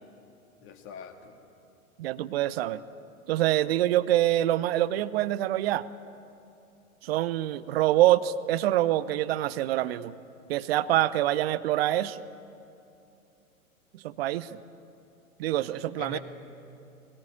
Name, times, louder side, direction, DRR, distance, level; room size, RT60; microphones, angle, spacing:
voice 1, 0.6-1.4 16.0-16.2, left 5 dB, 30° left, 4 dB, 2.2 m, -42 dB
voice 2, 2.0-2.8 3.3-5.8 7.0-10.1 10.5-12.2 13.9-14.5 15.4-16.2, right 14 dB, 45° right, 15 dB, 0.7 m, -25 dB
20.5 x 18.5 x 8.6 m, 2.8 s
figure-of-eight pair, 105°, 43 cm